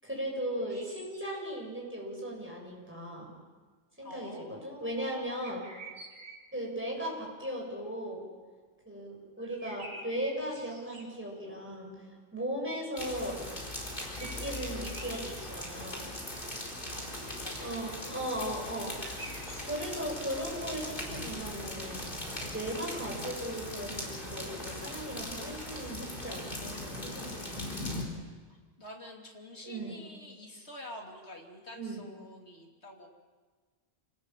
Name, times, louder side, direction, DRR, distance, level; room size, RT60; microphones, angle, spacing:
voice 1, 0.0-3.3 4.0-5.6 6.5-8.2 8.8-12.0 12.3-13.4 14.2-16.1 17.6-18.9 19.6-22.2 22.5-27.7 29.6-30.0 31.7-32.0, equal, 10° right, -2 dB, 6.8 m, -37 dB
sound 1, 0.6-1.4 5.4-6.6 9.4-11.3 14.0-15.6 19.0-19.7, right 2 dB, 80° right, 3.8 m, -48 dB
voice 2, 4.0-5.7 16.8-18.5 28.5-33.1, left 1 dB, 65° left, 1 dB, 3.3 m, -49 dB
sound 2, 13.0-28.0, left 1 dB, 45° left, 4.5 m, -39 dB
28.0 x 18.5 x 7.4 m, 1.4 s
omnidirectional pair, 1.2 m